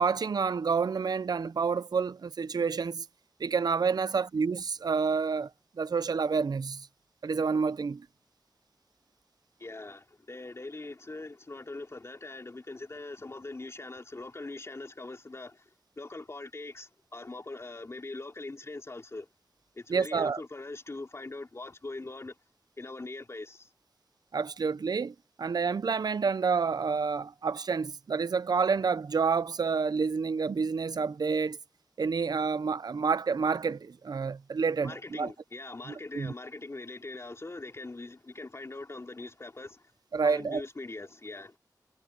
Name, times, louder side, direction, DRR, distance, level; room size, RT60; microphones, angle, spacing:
voice 1, 0.0-3.1 3.4-5.5 5.8-6.9 7.2-8.0 19.9-20.4 24.3-31.6 32.0-35.3 35.9-36.3 40.1-40.6, right 5 dB, 65° right, 0.5 m, -29 dB
voice 2, 9.6-15.7 16.0-19.3 19.8-22.3 22.8-23.7 34.8-39.8 40.2-41.6, left 2 dB, 40° left, 3.4 m, -42 dB
wide cardioid pair, 85°, 7 cm